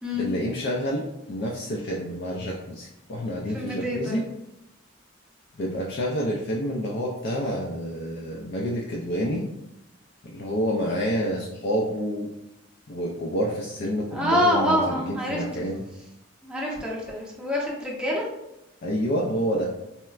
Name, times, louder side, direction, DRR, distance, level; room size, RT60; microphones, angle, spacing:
voice 1, 0.1-4.2 5.6-9.4 10.2-12.3 12.9-15.8 18.8-19.7, equal, 55° left, -2 dB, 0.4 m, -28 dB
voice 2, 3.5-4.2 14.1-15.4 16.4-18.3, equal, 5° right, -4 dB, 0.7 m, -26 dB
4.2 x 2.1 x 2.3 m, 0.88 s
head